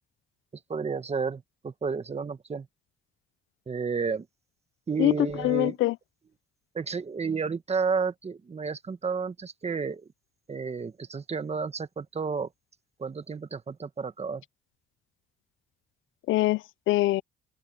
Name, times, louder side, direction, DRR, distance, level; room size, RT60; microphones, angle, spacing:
voice 1, 0.7-2.7 3.7-4.3 4.9-5.7 6.7-10.1 10.5-12.5 13.0-14.4, right 5 dB, 30° right, 1.6 m, -31 dB
voice 2, 5.0-5.9 16.3-17.2, left 17 dB, 80° left, 0.4 m, -24 dB
open air
cardioid pair, 90°, 20 cm